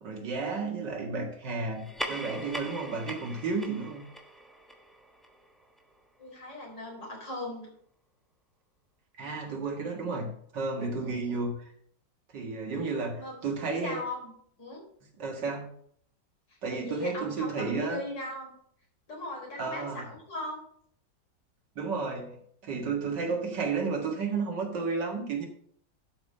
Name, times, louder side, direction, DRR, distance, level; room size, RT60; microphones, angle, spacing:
voice 1, 0.0-4.1 9.2-10.3 10.5-11.7 12.3-14.0 15.2-15.7 16.6-18.0 19.6-20.0 21.8-25.5, right 4 dB, 70° right, 2 dB, 2.4 m, -32 dB
sound 1, 1.7-6.6, equal, ahead, 0.7 m, -41 dB
voice 2, 6.2-7.7 11.0-11.3 13.1-13.4 13.6-14.3 14.6-14.8 16.7-18.5 19.1-20.6, left 2 dB, 75° left, -2 dB, 4.6 m, -38 dB
11.5 x 5.3 x 5.5 m, 0.64 s
omnidirectional pair, 1.9 m